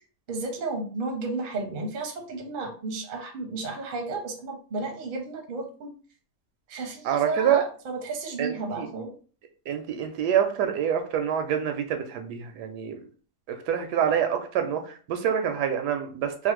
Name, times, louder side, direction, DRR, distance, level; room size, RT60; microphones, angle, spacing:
voice 1, 0.3-5.9 6.7-9.1, right 3 dB, 50° right, 2 dB, 0.6 m, -33 dB
voice 2, 7.0-7.6 8.4-8.9 9.7-13.0 13.5-16.5, right 9 dB, 85° right, 6 dB, 1.2 m, -26 dB
3.3 x 2.0 x 3.0 m, 0.40 s
omnidirectional pair, 1.7 m